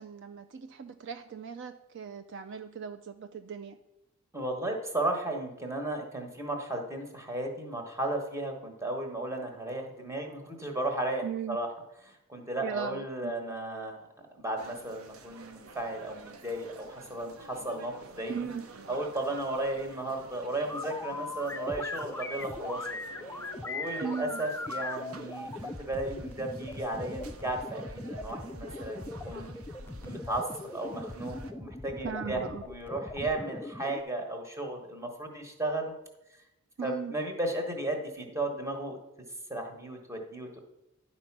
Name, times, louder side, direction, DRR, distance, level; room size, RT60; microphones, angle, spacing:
voice 1, 0.0-3.8 11.2-11.6 12.6-13.3 18.3-18.6 24.0-24.4 32.0-32.6 36.8-37.1, right 7 dB, 55° right, 9 dB, 0.4 m, -38 dB
voice 2, 4.3-11.7 12.0-14.1 14.3-18.5 18.9-22.9 23.6-27.8 28.1-29.5 30.0-30.5 30.7-35.9 36.8-39.0 39.5-40.6, right 2 dB, 15° right, 3 dB, 1.2 m, -34 dB
sound 1, 14.6-31.5, right 3 dB, 85° right, 0.7 m, -50 dB
sound 2, 20.7-34.0, left 2 dB, 10° left, 0.3 m, -40 dB
10.5 x 4.3 x 5.9 m, 0.90 s
head